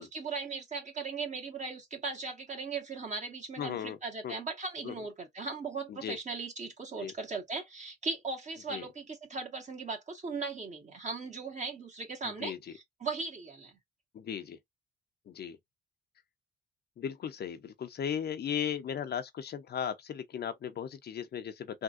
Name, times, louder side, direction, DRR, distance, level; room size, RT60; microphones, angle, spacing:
voice 1, 0.0-13.8, right 4 dB, 35° right, 1.6 m, -38 dB
voice 2, 3.6-4.0 4.2-4.3 4.8-4.9 5.9-6.2 7.0-7.1 8.7-8.9 12.2-12.6 14.1-14.6 15.3-15.6 17.0-21.8, left 8 dB, 55° left, 0.7 m, -36 dB
3.6 x 2.6 x 2.5 m
cardioid pair, 90°, 20 cm